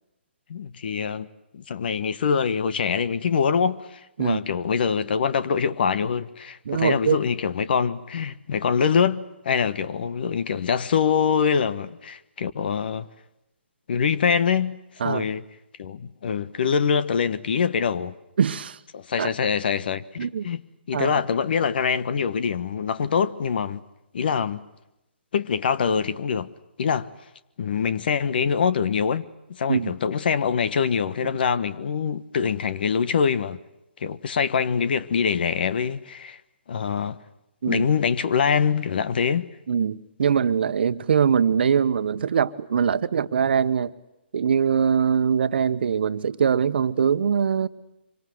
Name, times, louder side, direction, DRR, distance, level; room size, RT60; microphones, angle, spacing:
voice 1, 0.5-1.3 1.5-13.1 13.9-14.8 15.0-15.4 15.8-18.1 18.9-20.6 20.9-23.8 24.1-24.6 25.3-26.5 26.8-27.1 27.6-29.2 29.5-33.6 34.0-36.4 36.7-37.2 37.7-39.5, left 6 dB, 55° left, 1.3 m, -24 dB
voice 2, 6.7-7.2 15.0-15.2 18.4-18.8 19.2-19.3 20.2-20.5 20.9-21.2 29.7-29.9 37.6-37.8 39.7-43.9 44.3-47.7, right 7 dB, 60° right, 1.2 m, -22 dB
25.5 x 25.0 x 7.9 m
figure-of-eight pair, 135°, 6 cm